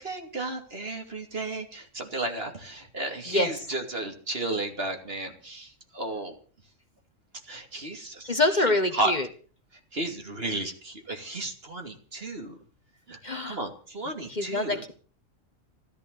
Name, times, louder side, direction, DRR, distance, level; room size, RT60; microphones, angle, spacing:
voice 1, 0.0-6.4 7.5-8.3 8.5-9.1 9.9-12.6 13.1-13.2 13.5-14.8, right 2 dB, 50° right, 4 dB, 3.0 m, -33 dB
voice 2, 8.2-9.2 13.2-13.6 14.3-14.9, left 2 dB, 35° left, 8 dB, 1.6 m, -25 dB
14.5 x 13.5 x 6.9 m, 0.41 s
omnidirectional pair, 1.3 m